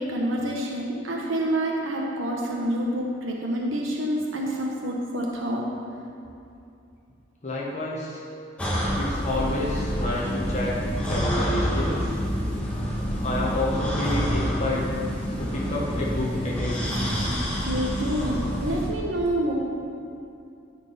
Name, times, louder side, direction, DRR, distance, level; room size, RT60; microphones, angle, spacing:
voice 1, 0.0-5.6 17.3-19.5, right 1 dB, 90° right, -1 dB, 1.1 m, -27 dB
voice 2, 7.4-8.2 8.9-10.8 11.1-12.1 13.2-14.9 15.4-16.9, left 1 dB, 35° left, -5 dB, 1.2 m, -29 dB
sound 1, 8.6-18.9, equal, 5° left, 1.5 m, -27 dB
13.0 x 4.5 x 5.4 m, 2.6 s
head